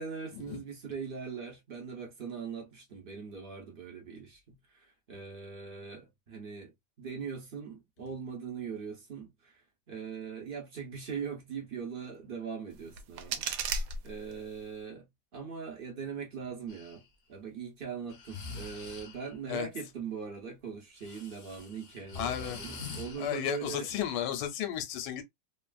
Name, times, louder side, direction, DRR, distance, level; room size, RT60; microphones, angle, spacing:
voice 1, 0.0-9.6 9.9-13.8 14.0-23.9, right 6 dB, 55° right, 0.6 m, -41 dB
sound 1, 12.7-14.7, right 4 dB, 75° right, 1.1 m, -36 dB
Breathing, 16.7-16.9 18.1-19.4 21.0-23.7, left 3 dB, 50° left, 0.8 m, -44 dB
voice 2, 22.1-22.6 23.2-25.2, left 10 dB, 75° left, 1.3 m, -33 dB
3.0 x 2.4 x 2.3 m
omnidirectional pair, 2.0 m